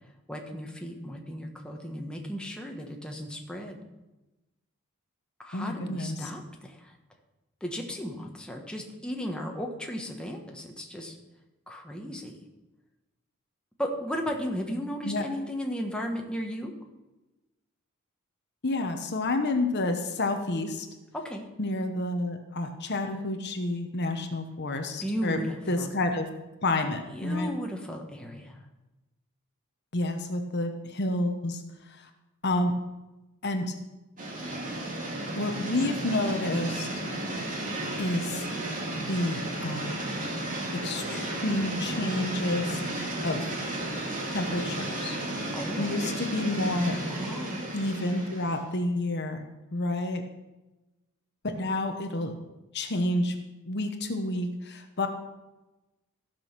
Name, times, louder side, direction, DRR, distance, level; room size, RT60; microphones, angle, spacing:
voice 1, 0.3-3.8 5.4-6.9 7.6-11.2 11.7-12.4 13.8-16.7 21.2-21.5 25.0-25.9 27.1-28.6 45.5-45.9 47.1-47.7, equal, 5° left, 1 dB, 1.3 m, -35 dB
voice 2, 5.5-6.3 15.0-15.3 18.6-20.9 21.6-25.4 25.7-26.3 26.6-27.5 29.9-31.6 31.9-32.1 32.4-32.7 33.4-33.7 35.4-36.9 38.0-38.4 39.1-39.9 40.7-42.8 43.2-43.5 44.3-45.2 45.8-47.0 47.7-49.4 49.7-50.2 51.4-52.3 52.7-53.4 53.6-55.1, left 2 dB, 50° left, 6 dB, 1.0 m, -29 dB
sound 1, 34.2-48.7, right 1 dB, 35° right, 2.3 m, -33 dB
14.5 x 6.3 x 6.0 m, 1.0 s
head